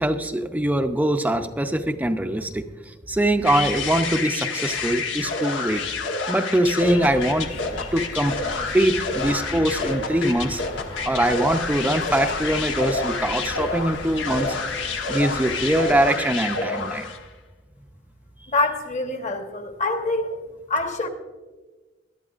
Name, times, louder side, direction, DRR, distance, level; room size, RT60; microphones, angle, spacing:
voice 1, 0.0-5.8 6.3-7.5 7.9-8.4 8.7-10.6 11.0-14.6 15.1-17.1, right 1 dB, 10° right, 7 dB, 0.5 m, -23 dB
sound 1, 3.4-17.3, left 4 dB, 90° left, 1.1 m, -29 dB
sound 2, 6.8-16.1, left 2 dB, 55° left, 2.1 m, -37 dB
voice 2, 18.5-20.4 20.7-21.1, left 2 dB, 40° left, 5 dB, 1.2 m, -25 dB
20.5 x 12.0 x 2.5 m, 1.3 s
head